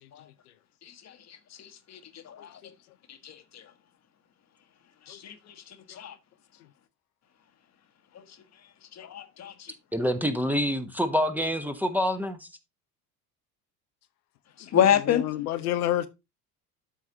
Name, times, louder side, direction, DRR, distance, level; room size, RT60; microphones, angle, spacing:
voice 1, 0.8-1.1 1.6-2.0 2.2-2.6 3.1-3.6 5.1-5.5 6.0-6.1 8.1-8.2 9.0-9.7 14.7-15.2, left 9 dB, 35° left, 1.3 m, -28 dB
voice 2, 9.9-12.5, equal, 5° right, 1.0 m, -26 dB
voice 3, 14.6-16.1, left 12 dB, 70° left, 0.8 m, -30 dB
12.5 x 4.7 x 2.7 m
figure-of-eight pair, 65°, 46 cm